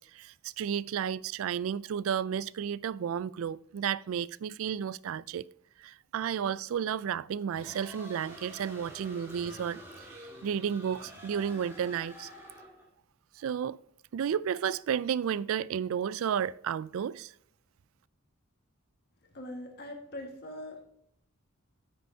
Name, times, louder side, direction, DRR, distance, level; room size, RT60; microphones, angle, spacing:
voice 1, 0.1-5.5 5.8-12.3 13.4-13.8 14.1-17.3, right 8 dB, 65° right, 0.3 m, -32 dB
sound 1, 7.5-12.9, equal, 10° right, 1.9 m, -48 dB
voice 2, 19.3-20.8, left 1 dB, 45° left, 1.8 m, -42 dB
9.5 x 8.9 x 2.8 m
head